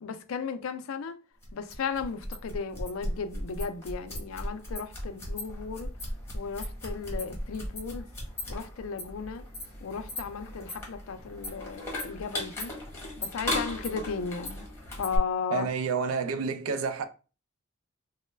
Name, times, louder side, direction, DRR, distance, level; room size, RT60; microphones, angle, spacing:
voice 1, 0.0-1.2 1.5-5.9 6.3-8.1 8.5-9.4 9.8-12.7 13.2-14.6 15.0-15.7, left 5 dB, 75° left, 0.4 m, -35 dB
sound 1, 1.4-15.2, left 1 dB, 10° left, 0.9 m, -37 dB
voice 2, 15.5-17.1, right 5 dB, 85° right, 0.4 m, -29 dB
3.1 x 2.1 x 3.2 m
head